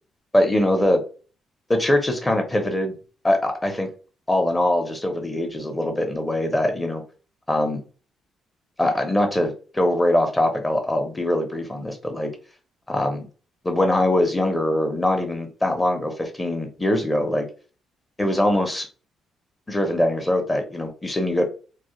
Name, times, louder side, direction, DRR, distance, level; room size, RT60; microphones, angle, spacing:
voice 1, 0.3-1.0 1.7-2.9 3.2-3.9 4.3-7.0 7.5-7.8 8.8-12.3 12.9-13.3 13.6-17.5 18.2-18.9 19.7-21.4, left 1 dB, 15° left, 4 dB, 0.6 m, -22 dB
2.3 x 2.0 x 2.8 m, 0.37 s
cardioid pair, 90°, 0 cm